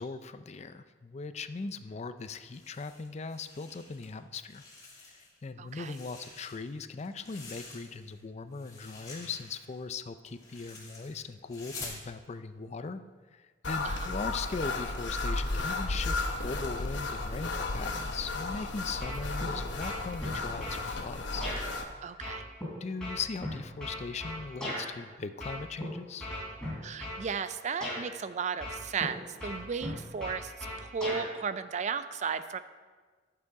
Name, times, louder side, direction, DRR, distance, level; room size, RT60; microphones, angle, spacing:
voice 1, 0.0-4.6 5.4-13.0 13.3-16.2 16.4-21.5 22.8-26.3, left 4 dB, 40° left, 11 dB, 0.4 m, -39 dB
sound 1, 2.4-4.1 4.4-5.4 5.7-8.2 8.5-12.0, left 3 dB, 20° left, 2.3 m, -48 dB
voice 2, 5.6-6.0 13.8-14.1 22.0-22.5 26.8-30.5 30.8-32.6, right 6 dB, 40° right, 12 dB, 0.4 m, -35 dB
sound 2, 13.6-21.8, left 2 dB, 75° left, 0.9 m, -34 dB
sound 3, 19.0-19.5 19.8-20.8 21.4-21.6 22.2-24.8 25.4-25.8 26.2-27.2 27.8-28.0 28.6-29.1 29.4-31.2, left 1 dB, 5° left, 3.3 m, -37 dB
11.5 x 7.0 x 4.7 m, 1.4 s
head